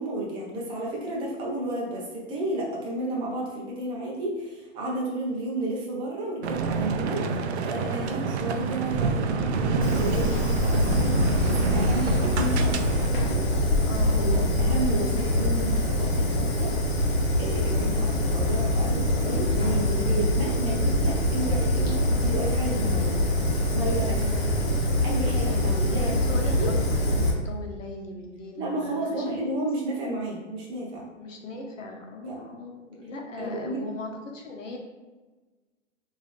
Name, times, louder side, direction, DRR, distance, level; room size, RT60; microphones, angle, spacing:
voice 1, 0.0-7.3 7.6-12.7 14.2-16.7 17.4-23.2 23.7-24.2 25.0-26.7 28.6-31.1 32.2-32.4 33.4-33.8, right 1 dB, 15° right, -3 dB, 0.5 m, -32 dB
sound 1, 6.4-13.1, right 5 dB, 60° right, 0.5 m, -28 dB
Fire, 9.8-27.3, left 1 dB, 55° left, 1.1 m, -24 dB
voice 2, 11.8-14.3 17.7-18.0 24.2-24.7 26.0-29.5 31.2-34.8, left 2 dB, 85° left, 1 dB, 0.9 m, -38 dB
3.2 x 2.7 x 3.1 m, 1.2 s
hypercardioid pair, 135°, 37 cm